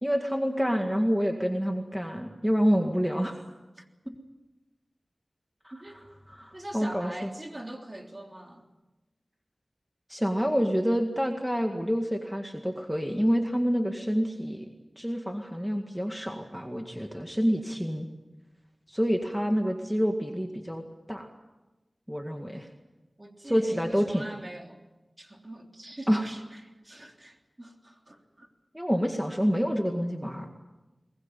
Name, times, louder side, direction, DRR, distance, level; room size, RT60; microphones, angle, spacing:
voice 1, 0.0-3.4 4.1-4.2 5.6-5.7 6.4-7.3 10.1-14.7 15.0-18.1 18.9-20.8 21.1-21.3 22.1-22.7 23.5-24.3 26.1-26.2 28.7-30.5, equal, 5° right, 2.0 m, -27 dB
voice 2, 5.7-6.0 6.5-8.7 23.2-24.8 25.2-28.5, right 1 dB, 30° right, 3.3 m, -43 dB
22.5 x 20.0 x 9.1 m
wide cardioid pair, 65°, 0 cm